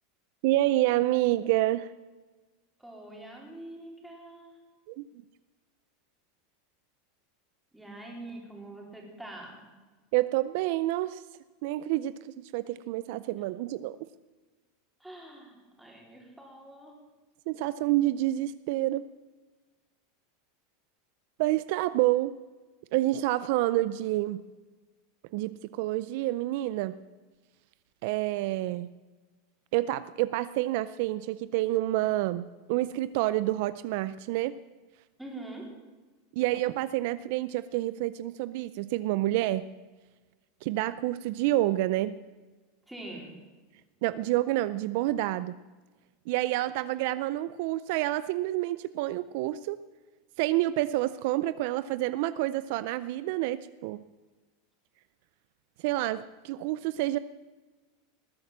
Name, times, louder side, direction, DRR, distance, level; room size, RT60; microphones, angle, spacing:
voice 1, 0.4-1.9 4.9-5.0 10.1-11.2 11.6-12.1 12.5-14.0 17.5-19.0 21.4-22.3 22.9-24.4 25.3-26.9 28.0-28.9 29.7-34.6 36.4-39.7 40.6-42.2 44.0-45.6 46.3-49.8 50.4-54.0 55.8-57.2, right 16 dB, 60° right, 15 dB, 0.4 m, -28 dB
voice 2, 2.8-4.6 7.7-9.7 15.0-17.0 35.2-35.7 42.9-43.3, right 2 dB, 5° right, -1 dB, 3.7 m, -44 dB
19.5 x 8.7 x 7.3 m, 1.3 s
supercardioid pair, 145°, 0 cm